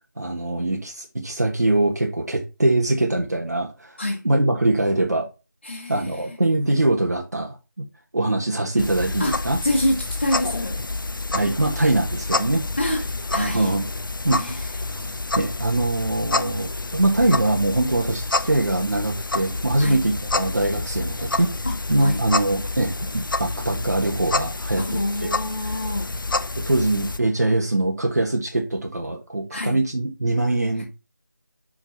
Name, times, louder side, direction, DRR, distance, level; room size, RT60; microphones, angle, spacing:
voice 1, 0.2-4.0 4.2-5.3 5.9-7.8 8.1-9.6 11.3-12.6 13.4-13.9 14.2-14.4 14.9-25.0 26.6-30.9, right 2 dB, 55° right, 1.4 m, -23 dB
voice 2, 5.6-6.4 9.2-10.8 12.8-13.7 14.3-14.9 19.8-20.0 21.6-22.2 24.8-26.3 29.5-29.8, left 1 dB, 30° left, 1.4 m, -27 dB
sound 1, 8.8-27.2, left 3 dB, 80° left, 0.6 m, -28 dB
5.2 x 5.0 x 5.7 m
figure-of-eight pair, 180°, 11 cm